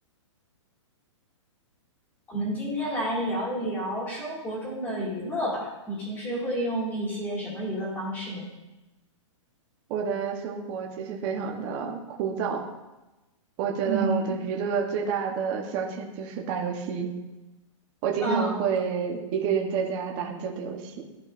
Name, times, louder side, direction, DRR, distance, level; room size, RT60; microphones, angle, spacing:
voice 1, 2.3-8.5 13.8-14.4 18.2-18.6, right 1 dB, 10° left, -5 dB, 2.1 m, -30 dB
voice 2, 9.9-12.7 13.6-17.1 18.0-21.0, right 6 dB, 25° right, 1 dB, 0.9 m, -29 dB
12.5 x 4.7 x 2.5 m, 1.0 s
hypercardioid pair, 170°, 16 cm